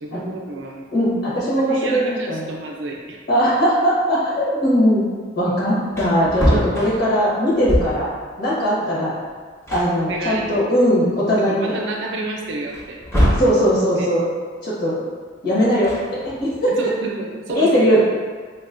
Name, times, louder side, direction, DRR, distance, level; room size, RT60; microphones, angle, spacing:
voice 1, 0.0-0.8 1.4-3.2 10.1-10.5 11.4-13.0 14.0-14.1 16.7-18.1, right 2 dB, 70° right, 0 dB, 0.5 m, -30 dB
voice 2, 0.9-2.5 3.3-5.1 5.3-8.1 8.4-9.1 9.7-11.8 13.4-14.2 14.6-15.0 15.4-16.7 17.5-18.0, equal, 60° left, -9 dB, 1.2 m, -19 dB
Wood, 5.5-5.6 5.9-8.1 9.2-9.3 9.7-10.9 11.4-11.5 12.7-13.6 15.6-16.6, equal, 15° left, 0.6 m, -23 dB
4.0 x 2.1 x 2.5 m, 1.5 s
head